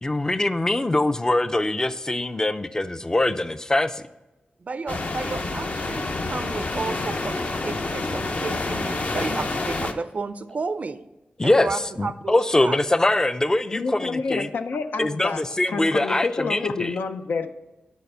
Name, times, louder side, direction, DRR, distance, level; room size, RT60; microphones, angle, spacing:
voice 1, 0.0-4.0 11.4-14.5 15.0-16.9, left 2 dB, 20° left, 12 dB, 0.4 m, -23 dB
voice 2, 4.6-11.1 11.4-12.8, right 4 dB, 50° right, 13 dB, 0.4 m, -32 dB
sound 1, 4.9-9.9, left 2 dB, 50° left, 0.7 m, -28 dB
voice 3, 13.7-17.5, left 4 dB, 85° left, 8 dB, 0.5 m, -29 dB
9.3 x 4.3 x 5.4 m, 1.0 s
wide cardioid pair, 85°, 3 cm